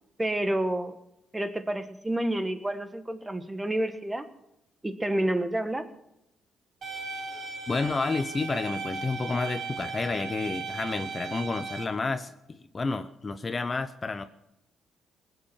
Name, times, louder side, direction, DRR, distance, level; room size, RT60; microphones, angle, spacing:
voice 1, 0.2-0.9 1.3-4.3 4.8-5.9, right 1 dB, 15° right, 10 dB, 1.4 m, -29 dB
sound 1, 6.8-11.8, right 4 dB, 55° right, 3.6 m, -36 dB
voice 2, 7.7-12.3 12.7-14.2, left 3 dB, 30° left, 11 dB, 0.8 m, -30 dB
19.0 x 8.0 x 7.2 m, 0.86 s
cardioid pair, 90°, 0 cm